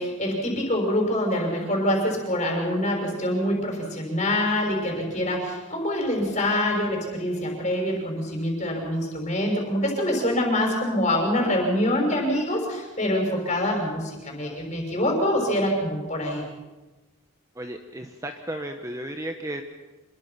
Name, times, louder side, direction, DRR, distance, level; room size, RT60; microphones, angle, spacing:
voice 1, 0.0-16.4, left 1 dB, 30° left, 1 dB, 6.2 m, -25 dB
voice 2, 17.6-19.6, right 1 dB, 15° right, 4 dB, 1.1 m, -34 dB
26.5 x 22.0 x 5.9 m, 1.1 s
head